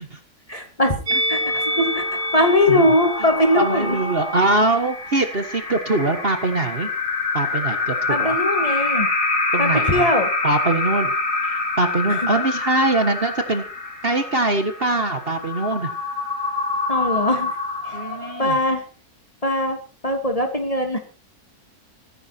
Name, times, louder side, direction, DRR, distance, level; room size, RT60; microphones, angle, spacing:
voice 1, 0.5-1.0 1.3-2.0 2.3-4.0 8.1-9.1 9.6-10.3 12.2-12.3 16.9-17.6 17.8-18.0 18.4-18.8 19.4-19.8 20.0-21.0, left 1 dB, 20° left, 5 dB, 2.7 m, -20 dB
Musical instrument, 1.1-6.3 6.6-6.8, equal, 85° right, 5.3 m, -29 dB
sound 1, 1.3-18.7, left 3 dB, 80° left, 5.2 m, -26 dB
voice 2, 3.5-6.9 7.3-8.3 9.5-10.1 10.4-11.1 11.4-13.6 14.0-15.9 17.9-18.6, right 2 dB, 40° right, 7 dB, 1.6 m, -22 dB
15.5 x 14.0 x 4.4 m, 0.36 s
omnidirectional pair, 1.7 m